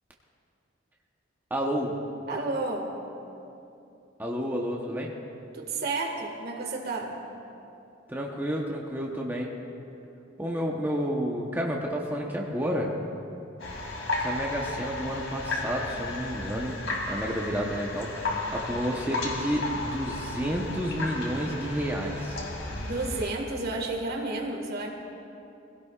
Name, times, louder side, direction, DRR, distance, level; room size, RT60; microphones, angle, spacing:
voice 1, 1.5-1.9 4.2-5.1 8.1-9.5 10.4-12.9 14.2-16.7 17.1-22.4, equal, 10° right, -2 dB, 0.9 m, -30 dB
voice 2, 2.3-2.9 5.5-7.2 22.9-24.9, right 2 dB, 55° right, 1 dB, 1.8 m, -31 dB
sound 1, 13.6-23.3, left 2 dB, 90° left, 2.4 m, -34 dB
22.0 x 16.5 x 2.4 m, 2.8 s
head